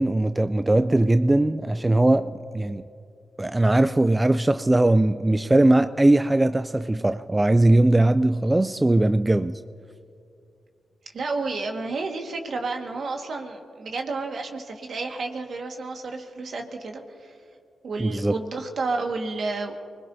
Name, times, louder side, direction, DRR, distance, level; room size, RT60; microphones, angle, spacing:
voice 1, 0.0-2.8 3.4-9.6 18.0-18.3, right 1 dB, 20° right, 0.4 m, -20 dB
voice 2, 11.1-17.3 17.8-19.7, right 3 dB, 65° right, 1.7 m, -31 dB
25.0 x 20.5 x 2.7 m
supercardioid pair, 50°, 0 cm